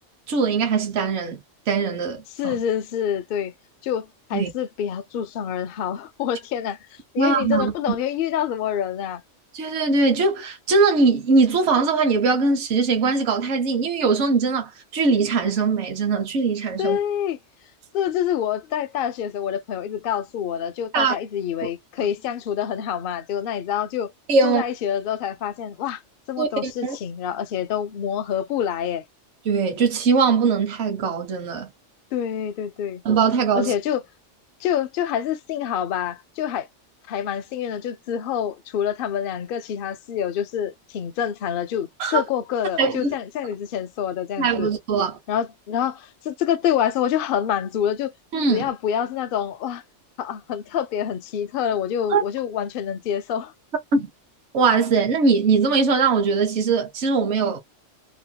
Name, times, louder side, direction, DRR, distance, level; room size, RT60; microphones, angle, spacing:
voice 1, 0.3-1.4 1.7-2.6 4.3-4.5 7.2-7.7 9.5-17.0 20.9-21.2 24.3-24.6 26.4-27.0 29.5-31.7 33.0-33.7 42.0-42.2 42.8-43.1 44.4-45.2 48.3-48.7 52.1-52.2 53.9-54.1 54.5-57.6, right 4 dB, 70° right, 1.1 m, -21 dB
voice 2, 2.4-3.5 3.8-9.2 16.8-17.4 17.9-24.1 24.4-26.0 26.3-29.0 32.1-33.0 33.6-34.0 34.6-36.7 37.1-44.7 45.3-48.1 48.5-49.8 50.2-53.5, left 9 dB, 60° left, 0.6 m, -26 dB
2.9 x 2.1 x 2.7 m
omnidirectional pair, 1.3 m